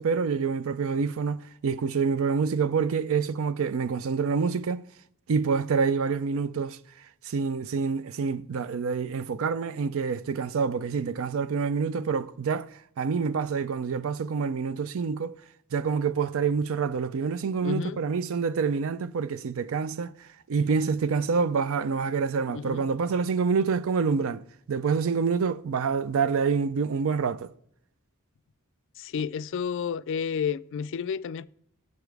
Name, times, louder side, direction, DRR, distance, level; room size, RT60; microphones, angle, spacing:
voice 1, 0.0-4.8 5.3-6.8 7.2-12.7 13.0-15.4 15.7-20.1 20.5-24.4 24.7-27.5, right 5 dB, 65° right, 0.4 m, -27 dB
voice 2, 17.6-18.0 22.5-22.8 29.0-31.5, left 7 dB, 60° left, 0.3 m, -31 dB
8.1 x 7.0 x 4.7 m
head